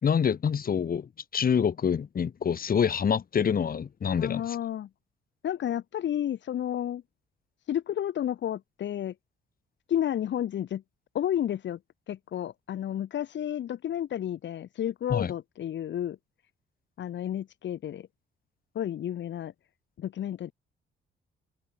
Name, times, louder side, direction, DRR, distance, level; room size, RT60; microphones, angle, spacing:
voice 1, 0.0-4.4 15.1-15.3, left 7 dB, 45° left, 2.9 m, -26 dB
voice 2, 4.2-4.9 5.4-7.0 7.7-9.1 9.9-10.8 11.1-11.8 12.1-16.2 17.0-18.1 18.7-19.5 20.0-20.5, left 10 dB, 65° left, 2.2 m, -31 dB
cardioid pair, 90°, 20 cm